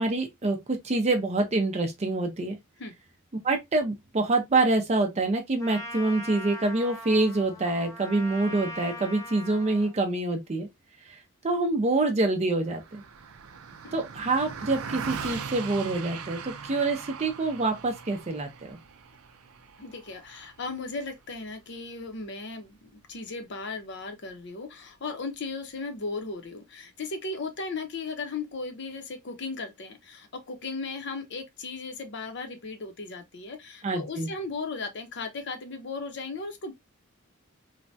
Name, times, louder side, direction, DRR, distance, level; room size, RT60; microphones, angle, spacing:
voice 1, 0.0-2.6 3.4-10.7 11.1-13.0 13.9-18.8 33.8-34.3, right 2 dB, 30° right, 0.5 m, -26 dB
Trumpet, 5.6-9.9, left 1 dB, 15° left, 0.5 m, -40 dB
Car passing by, 12.7-22.3, right 6 dB, 90° right, 0.5 m, -40 dB
voice 2, 19.8-36.7, left 3 dB, 55° left, 0.7 m, -36 dB
3.2 x 2.2 x 2.5 m
head